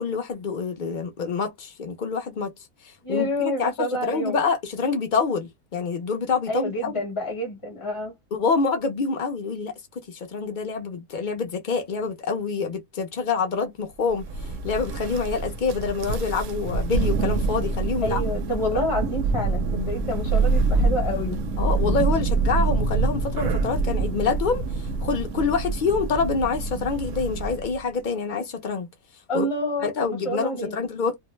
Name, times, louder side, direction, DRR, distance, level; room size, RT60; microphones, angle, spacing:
voice 1, 0.0-2.5 2.8-3.7 4.0-6.9 8.3-14.2 14.6-18.2 21.6-24.6 25.0-28.9 29.3-29.5 29.8-31.2, left 5 dB, 65° left, 0.4 m, -26 dB
voice 2, 3.0-4.4 6.5-8.1 18.0-21.4 29.3-30.8, left 1 dB, 25° left, 0.8 m, -28 dB
Thunder, 14.1-27.8, right 3 dB, 70° right, 0.8 m, -26 dB
2.6 x 2.1 x 3.0 m
omnidirectional pair, 1.5 m